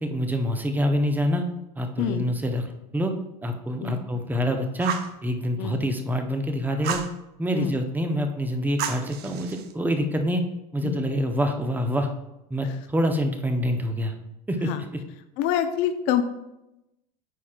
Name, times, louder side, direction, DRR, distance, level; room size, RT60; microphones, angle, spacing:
voice 1, 0.0-1.5 1.8-3.1 3.4-4.9 5.2-7.0 7.4-10.4 10.7-12.1 12.5-14.1 14.5-14.7, equal, 10° right, 5 dB, 0.8 m, -26 dB
Fire, 4.8-5.2 6.8-7.1 8.8-9.7, right 7 dB, 50° right, 0.7 m, -31 dB
voice 2, 15.4-16.2, left 10 dB, 60° left, 9 dB, 0.7 m, -26 dB
9.3 x 4.2 x 2.4 m, 0.91 s
hypercardioid pair, 90°, 21 cm